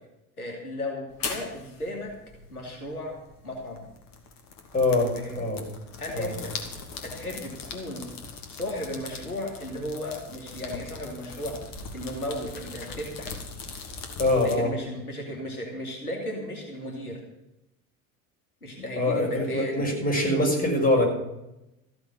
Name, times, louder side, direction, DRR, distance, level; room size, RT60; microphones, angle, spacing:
voice 1, 0.4-2.1 2.5-3.2 3.4-3.9 5.1-5.4 6.0-6.5 7.0-8.1 8.5-11.6 11.9-13.4 14.4-17.2 18.6-19.9, left 1 dB, 85° left, 0 dB, 2.7 m, -35 dB
sound 1, 1.1-14.5, left 4 dB, 50° left, 2.8 m, -40 dB
voice 2, 4.7-5.6 6.1-6.3 14.2-14.7 19.0-21.1, left 1 dB, 20° left, -1 dB, 6.3 m, -24 dB
15.0 x 7.9 x 8.3 m, 0.90 s
figure-of-eight pair, 65°, 44 cm